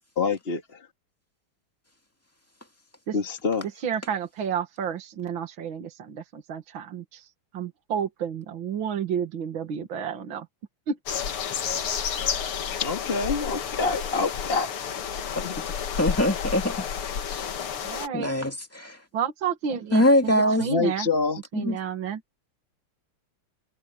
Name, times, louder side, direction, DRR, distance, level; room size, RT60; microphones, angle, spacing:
voice 1, 0.2-0.9 3.1-3.7 12.8-14.7 15.4-15.6 20.6-21.4, left 4 dB, 30° left, 1.7 m, -26 dB
voice 2, 3.8-10.5 10.9-11.0 17.8-18.4 19.1-20.0 20.3-21.1 21.5-22.2, right 7 dB, 65° right, 2.4 m, -31 dB
sound 1, 11.1-18.1, left 7 dB, 85° left, 2.5 m, -31 dB
voice 3, 16.0-16.9 17.3-17.4 18.1-19.0 19.9-20.7 21.5-21.8, left 1 dB, 5° left, 2.3 m, -23 dB
omnidirectional pair, 2.3 m